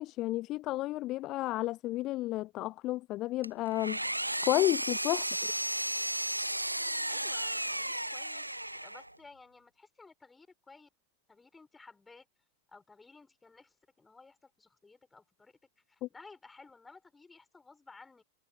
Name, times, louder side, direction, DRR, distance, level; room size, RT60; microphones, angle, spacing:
voice 1, 0.0-4.0 4.4-5.5 16.0-16.1, left 17 dB, 35° left, 0.6 m, -32 dB
Engine, 3.4-9.2, right 1 dB, 85° right, 1.3 m, -34 dB
voice 2, 7.1-8.5 8.8-10.9 11.3-12.3 12.7-15.6 15.9-18.2, left 4 dB, 10° left, 7.2 m, -56 dB
figure-of-eight pair, 90°, 0 cm